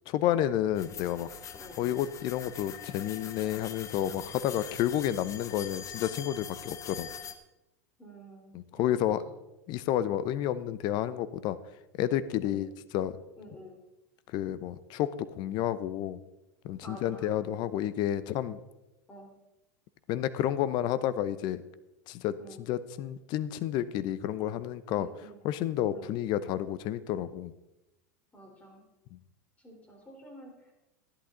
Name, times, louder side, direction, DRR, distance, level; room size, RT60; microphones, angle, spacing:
voice 1, 0.1-1.3 1.8-7.1 8.5-9.2 9.7-11.6 12.0-13.2 14.3-16.2 16.6-18.6 20.1-21.6 22.1-25.1 25.4-27.5 29.1-29.2, left 11 dB, 50° left, 15 dB, 0.8 m, -30 dB
sound 1, 0.8-7.4, left 8 dB, 35° left, 1.2 m, -43 dB
voice 2, 8.0-9.3 12.4-12.6 13.4-13.8 16.8-17.4 19.1-19.3 22.4-22.6 24.9-25.4 25.9-26.1 28.3-28.8 29.6-30.7, equal, 15° left, 1 dB, 4.0 m, -49 dB
13.0 x 11.0 x 3.9 m, 0.95 s
hypercardioid pair, 110°, 9 cm